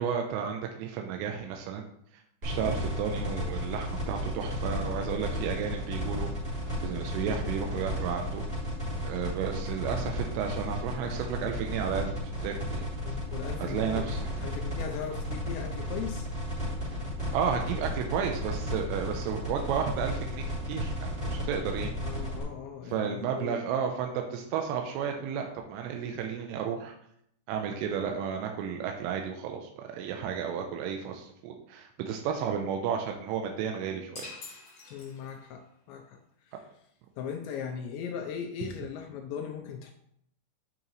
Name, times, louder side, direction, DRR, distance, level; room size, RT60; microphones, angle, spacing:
voice 1, 0.0-1.9 2.4-6.3 6.8-8.4 9.0-12.8 13.6-14.3 17.3-21.9 22.9-26.9 27.5-34.3, right 7 dB, 90° right, 3 dB, 3.3 m, -32 dB
sound 1, 2.4-22.4, equal, 10° right, 2.9 m, -34 dB
voice 2, 13.0-16.3 21.8-23.6 34.9-36.6 37.2-39.9, left 7 dB, 85° left, 4 dB, 2.5 m, -39 dB
sound 2, 34.1-35.6, left 3 dB, 40° left, 2.8 m, -45 dB
8.9 x 6.5 x 3.1 m, 0.71 s
omnidirectional pair, 5.7 m